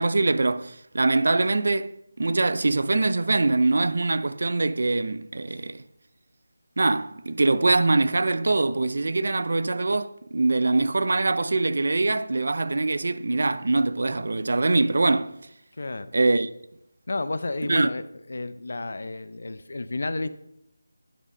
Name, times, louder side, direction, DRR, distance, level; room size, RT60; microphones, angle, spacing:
voice 1, 0.0-5.8 6.8-15.3 16.1-16.5 17.7-17.9, right 3 dB, 60° right, 0.4 m, -23 dB
voice 2, 15.8-16.1 17.1-18.0 18.3-20.3, left 2 dB, 60° left, 0.5 m, -31 dB
9.3 x 4.1 x 5.1 m
figure-of-eight pair, 170°, 0 cm